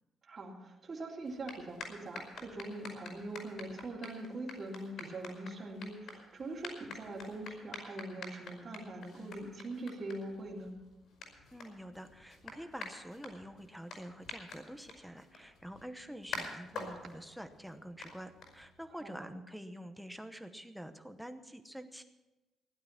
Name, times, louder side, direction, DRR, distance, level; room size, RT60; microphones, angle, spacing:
voice 1, 0.2-10.7 19.0-19.3, right 2 dB, 30° right, 0 dB, 2.5 m, -42 dB
sound 1, 1.2-19.0, left 3 dB, 60° left, 5.2 m, -48 dB
voice 2, 11.5-22.0, equal, ahead, 7 dB, 0.9 m, -47 dB
16.0 x 11.5 x 5.8 m, 1.0 s
cardioid pair, 180°, 0 cm